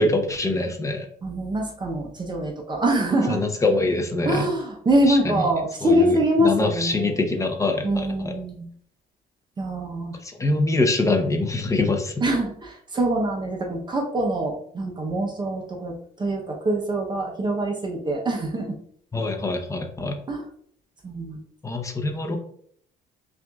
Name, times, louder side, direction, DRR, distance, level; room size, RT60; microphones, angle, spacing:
voice 1, 0.0-1.1 3.3-4.5 5.1-5.4 5.8-8.3 10.2-12.1 19.1-20.2 21.6-22.4, left 2 dB, 20° left, 4 dB, 0.7 m, -24 dB
voice 2, 1.2-3.4 4.3-7.3 7.8-8.7 9.6-10.2 12.2-18.8 20.3-20.4 21.0-21.4, right 1 dB, 25° right, 1 dB, 0.7 m, -24 dB
5.8 x 2.6 x 2.3 m, 0.63 s
cardioid pair, 110°, 17 cm